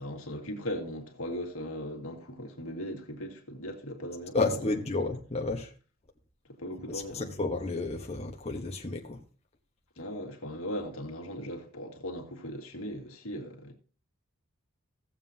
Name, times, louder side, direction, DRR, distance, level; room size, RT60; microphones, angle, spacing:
voice 1, 0.0-4.8 6.6-7.3 10.0-13.7, equal, 80° left, 2.0 m, -38 dB
voice 2, 4.3-5.7 6.9-9.2, left 3 dB, 30° left, 1.1 m, -31 dB
16.5 x 7.5 x 2.8 m
head